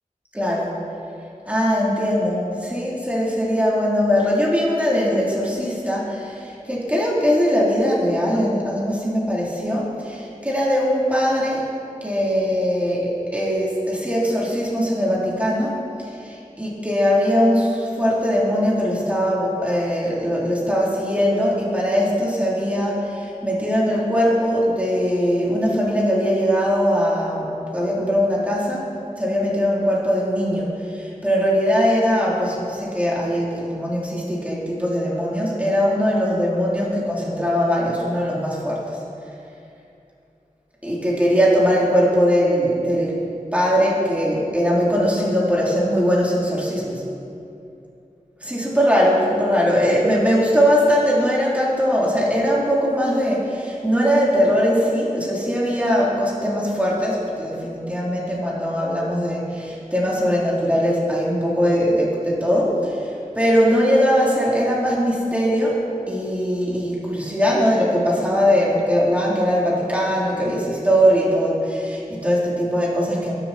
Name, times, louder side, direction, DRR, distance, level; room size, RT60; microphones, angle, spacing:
voice 1, 0.3-0.8 1.5-11.7 12.0-15.8 16.2-28.9 29.2-38.9 40.8-43.2 43.5-47.0 48.4-63.0 63.4-73.3, equal, 10° right, -6 dB, 4.2 m, -20 dB
22.5 x 11.5 x 4.6 m, 2.7 s
wide cardioid pair, 50°, 14 cm